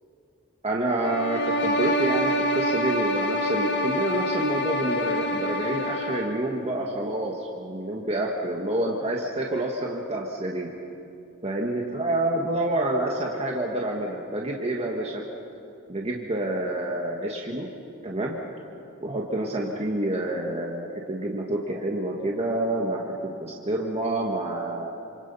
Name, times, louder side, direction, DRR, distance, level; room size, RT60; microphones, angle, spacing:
voice 1, 0.6-10.7 11.4-15.2 15.9-17.7 18.0-18.4 19.0-24.9, right 1 dB, 30° right, -1 dB, 1.8 m, -28 dB
sound 1, 1.0-6.4, equal, 55° left, 1.8 m, -26 dB
28.0 x 26.5 x 5.6 m, 2.6 s
head